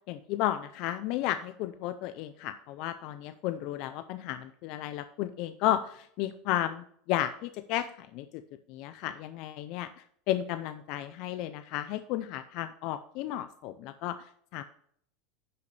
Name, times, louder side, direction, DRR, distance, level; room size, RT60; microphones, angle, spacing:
voice 1, 0.1-8.3 8.7-9.9 10.3-14.2 14.5-14.6, left 13 dB, 55° left, 10 dB, 0.5 m, -33 dB
10.5 x 6.9 x 3.3 m, 0.66 s
supercardioid pair, 140°, 0 cm